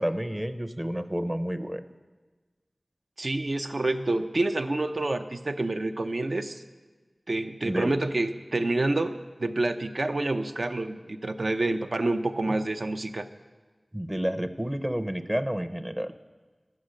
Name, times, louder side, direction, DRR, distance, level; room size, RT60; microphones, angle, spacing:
voice 1, 0.0-1.9 7.6-7.9 13.9-16.1, equal, 20° right, 9 dB, 0.6 m, -30 dB
voice 2, 3.2-6.6 7.3-13.3, right 2 dB, 70° right, 8 dB, 0.6 m, -28 dB
12.0 x 8.6 x 6.4 m, 1.3 s
wide cardioid pair, 50°, 0 cm